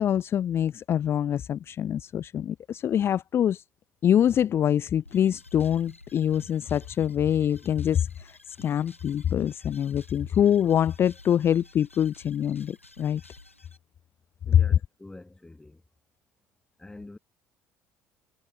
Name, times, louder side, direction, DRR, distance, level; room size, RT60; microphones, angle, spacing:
voice 1, 0.0-3.6 4.0-13.2 14.5-14.6, left 9 dB, 35° left, 0.4 m, -25 dB
sound 1, 5.0-13.8, left 2 dB, 90° left, 0.8 m, -53 dB
voice 2, 14.4-15.8 16.8-17.2, left 2 dB, 10° left, 1.1 m, -46 dB
figure-of-eight pair, 55°, 7 cm